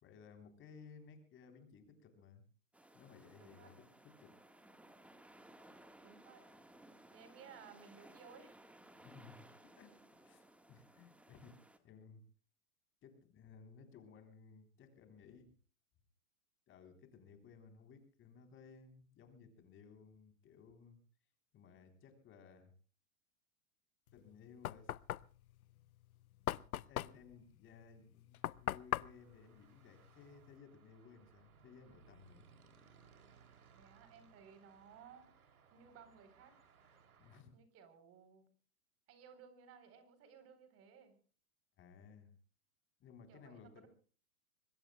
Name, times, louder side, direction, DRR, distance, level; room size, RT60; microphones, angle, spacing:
voice 1, 0.0-2.4 2.9-4.3 9.0-12.2 13.0-15.5 16.7-21.0 21.5-22.7 24.1-24.9 25.7-25.8 26.4-32.5 37.2-37.5 41.8-42.3 43.0-43.9, left 5 dB, 30° left, 7 dB, 3.7 m, -59 dB
sound 1, 2.7-11.8, right 1 dB, 5° right, 1.6 m, -61 dB
voice 2, 3.4-3.7 6.0-6.5 7.1-8.6 9.0-9.2 33.7-36.6 37.5-38.4 39.1-41.2 43.3-43.9, right 7 dB, 35° right, 11 dB, 4.0 m, -59 dB
Knock, 24.1-30.6, left 12 dB, 90° left, 0.6 m, -42 dB
sound 2, 28.4-37.4, right 6 dB, 90° right, 3.2 m, -66 dB
25.0 x 21.5 x 2.3 m, 0.40 s
hypercardioid pair, 125°, 42 cm